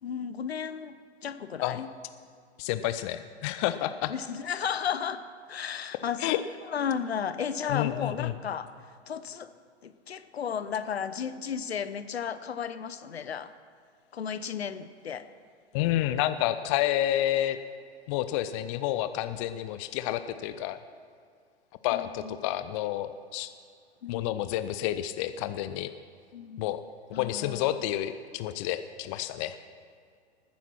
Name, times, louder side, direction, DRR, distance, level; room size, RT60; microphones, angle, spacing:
voice 1, 0.0-1.9 4.1-6.4 6.7-8.7 9.1-9.5 9.8-13.5 14.1-15.3 21.9-22.4 24.0-24.3 26.3-26.7 27.1-27.8, left 7 dB, 65° left, 13 dB, 0.9 m, -34 dB
voice 2, 2.6-4.1 6.2-6.4 7.7-8.3 15.7-17.6 18.1-20.8 21.8-23.5 24.1-25.9 26.6-26.8 27.2-29.6, left 13 dB, 30° left, 11 dB, 0.5 m, -29 dB
19.0 x 9.9 x 6.0 m, 2.2 s
figure-of-eight pair, 100°, 33 cm